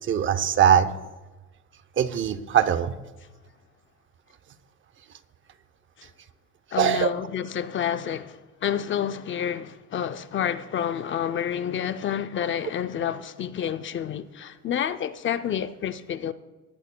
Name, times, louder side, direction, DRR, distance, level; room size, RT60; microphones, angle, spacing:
voice 1, 0.1-0.9 2.0-2.9 6.8-7.1, right 9 dB, 40° right, 0.7 m, -21 dB
voice 2, 6.7-16.3, left 9 dB, 40° left, 0.5 m, -29 dB
19.0 x 12.5 x 2.2 m
cardioid pair, 140°, 31 cm